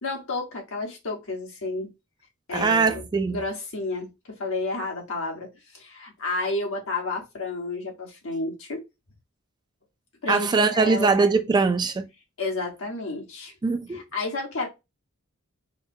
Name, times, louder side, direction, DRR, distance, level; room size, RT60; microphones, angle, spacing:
voice 1, 0.0-1.9 2.5-3.1 3.3-5.5 5.7-8.8 10.2-11.1 12.4-13.5 13.9-14.7, left 2 dB, 70° left, 1.4 m, -31 dB
voice 2, 2.5-3.4 10.3-12.1 13.6-14.0, right 4 dB, 20° right, 0.3 m, -22 dB
5.0 x 2.1 x 2.7 m
head